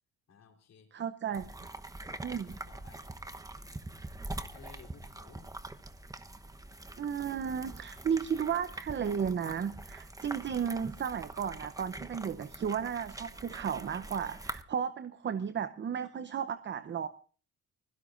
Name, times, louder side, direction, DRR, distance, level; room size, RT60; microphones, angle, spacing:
voice 1, 0.3-0.9 1.3-1.8 2.3-3.1 4.5-5.5, left 6 dB, 60° left, 3 dB, 3.9 m, -57 dB
voice 2, 0.9-1.4 2.2-2.5 7.0-17.1, right 7 dB, 40° right, 13 dB, 0.7 m, -34 dB
sound 1, 1.3-14.6, right 2 dB, 10° right, 1.0 m, -44 dB
24.5 x 16.5 x 2.6 m, 0.41 s
cardioid pair, 90°, 30 cm